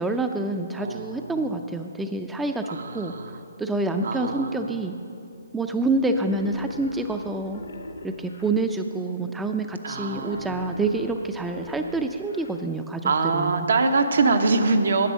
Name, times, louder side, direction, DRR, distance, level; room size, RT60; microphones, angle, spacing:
voice 1, 0.0-3.1 3.6-5.0 5.5-7.6 8.0-13.7, right 2 dB, 5° right, 6 dB, 0.4 m, -27 dB
voice 2, 0.8-1.4 2.7-3.4 4.0-4.8 9.8-10.6 13.0-15.1, right 3 dB, 70° right, 6 dB, 0.9 m, -24 dB
Wild animals, 6.0-8.5 10.0-12.5, left 2 dB, 80° left, 1.2 m, -41 dB
10.5 x 7.6 x 6.3 m, 2.5 s
hypercardioid pair, 145°, 0 cm